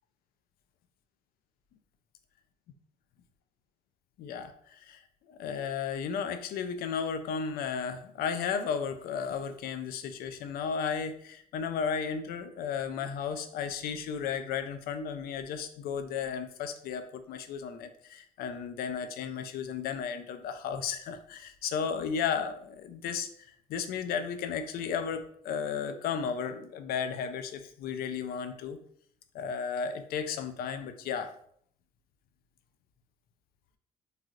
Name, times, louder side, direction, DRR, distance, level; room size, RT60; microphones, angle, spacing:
voice 1, 4.2-5.0 5.3-23.3 23.7-28.8 29.3-31.3, left 6 dB, 65° left, 8 dB, 0.4 m, -34 dB
3.1 x 2.7 x 2.4 m, 0.65 s
cardioid pair, 110°, 17 cm